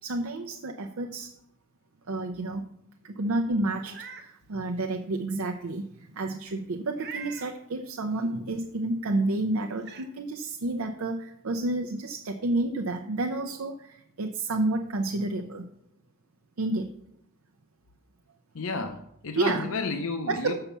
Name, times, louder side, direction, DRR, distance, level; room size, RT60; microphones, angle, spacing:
voice 1, 0.0-1.3 2.1-2.6 3.2-5.9 6.2-15.6 16.6-16.9 19.3-19.7 20.3-20.5, right 2 dB, 75° right, 4 dB, 0.6 m, -30 dB
Meow, 3.7-4.3 4.8-4.9 6.9-7.5 9.1-9.2 9.8-10.1, right 6 dB, 50° right, 0.8 m, -42 dB
voice 2, 18.5-20.5, left 3 dB, 70° left, 6 dB, 0.6 m, -32 dB
7.1 x 5.7 x 6.8 m, 0.75 s
head